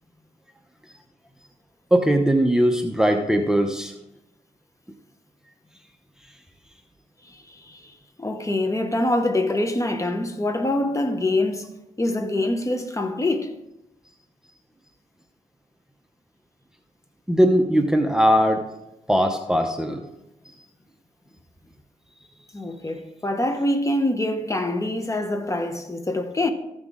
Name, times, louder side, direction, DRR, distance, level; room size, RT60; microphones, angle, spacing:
voice 1, 1.9-3.9 17.3-18.6 19.1-20.0, equal, 5° right, 0.9 m, -19 dB
voice 2, 7.3-7.9 8.2-11.7 12.0-13.5 22.5-26.5, left 1 dB, 20° left, 1.2 m, -25 dB
14.5 x 6.0 x 3.7 m
cardioid pair, 70°, 14 cm